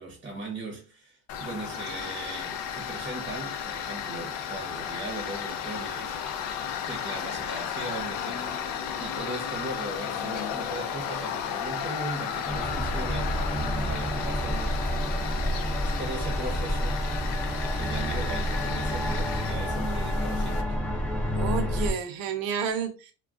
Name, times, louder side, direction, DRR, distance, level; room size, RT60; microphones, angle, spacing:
voice 1, 0.0-6.6 6.9-8.6 9.0-15.2 15.4-17.0 17.7-20.8, right 2 dB, 20° right, 0.8 m, -39 dB
Tools, 1.3-20.6, left 8 dB, 65° left, 0.6 m, -34 dB
sound 1, 12.5-21.9, equal, 5° left, 0.5 m, -29 dB
voice 2, 21.4-23.1, right 7 dB, 70° right, 0.8 m, -30 dB
2.3 x 2.2 x 3.6 m
cardioid pair, 130°, 38 cm